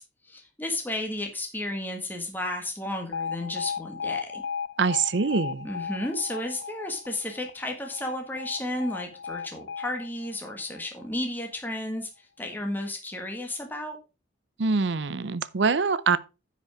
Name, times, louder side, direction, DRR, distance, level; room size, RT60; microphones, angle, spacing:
voice 1, 0.0-4.4 5.6-14.0, left 1 dB, 10° left, 1.6 m, -33 dB
Alarm, 3.1-11.2, left 6 dB, 70° left, 0.6 m, -36 dB
voice 2, 4.8-5.7 14.6-16.2, right 4 dB, 70° right, 0.6 m, -24 dB
10.0 x 5.2 x 4.7 m
head